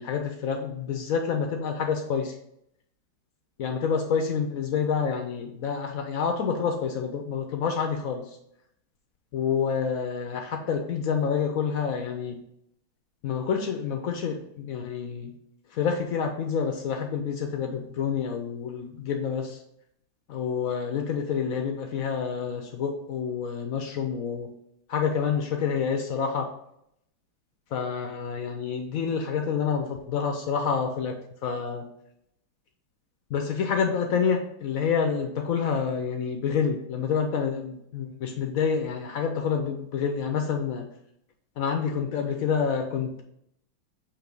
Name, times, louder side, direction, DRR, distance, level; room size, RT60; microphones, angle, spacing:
voice 1, 0.0-2.3 3.6-8.2 9.3-12.3 13.2-15.3 15.8-19.5 20.3-24.5 24.9-26.5 27.7-31.1 31.4-31.8 33.3-40.8 41.6-43.2, left 6 dB, 80° left, 4 dB, 0.7 m, -28 dB
7.3 x 3.0 x 5.2 m, 0.75 s
omnidirectional pair, 2.2 m